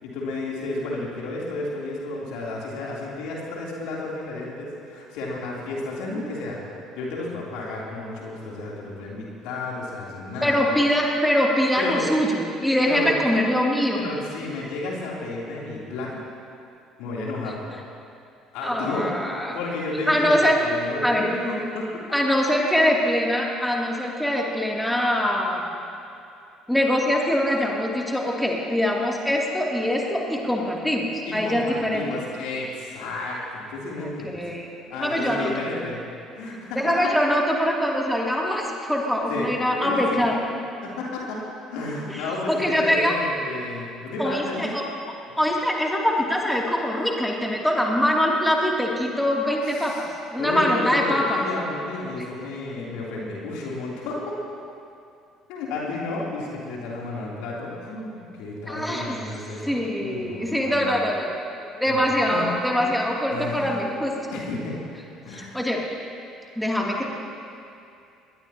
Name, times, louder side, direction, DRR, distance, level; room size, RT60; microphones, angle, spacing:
voice 1, 0.0-6.6 6.9-10.5 11.8-12.1 12.9-13.1 13.9-16.2 17.0-17.6 18.5-19.1 19.5-20.3 20.6-22.0 31.2-34.4 34.9-36.0 36.3-36.9 39.3-40.3 40.8-41.4 41.7-44.7 49.6-50.0 50.4-54.4 55.5-60.9 61.9-62.0 62.3-62.5 62.8-62.9 63.3-63.7 64.3-64.8 65.2-65.6, left 2 dB, 65° left, -4 dB, 3.3 m, -32 dB
voice 2, 10.4-14.1 18.6-19.6 20.1-20.6 21.0-21.3 22.1-25.8 26.7-32.0 33.9-35.5 36.8-40.4 42.1-43.1 44.2-44.8 45.4-51.5 52.2-52.3 58.7-59.2 59.6-61.4 61.6-64.1 65.3-65.8 66.5-67.1, equal, 5° left, -2 dB, 2.9 m, -23 dB
21.0 x 21.0 x 3.0 m, 2.6 s
figure-of-eight pair, 55°, 0 cm